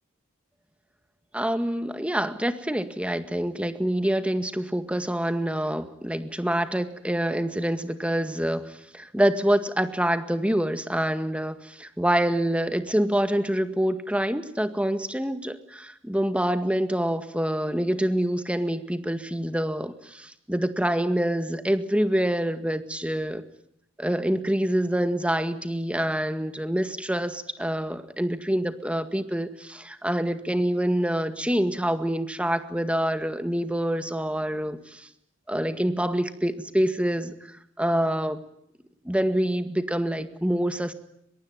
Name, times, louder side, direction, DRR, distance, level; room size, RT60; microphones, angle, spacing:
voice 1, 1.3-23.4 24.0-35.1 35.5-37.3 37.8-38.4 39.0-40.9, right 1 dB, 5° right, 9 dB, 1.9 m, -26 dB
23.5 x 22.0 x 9.6 m, 0.75 s
head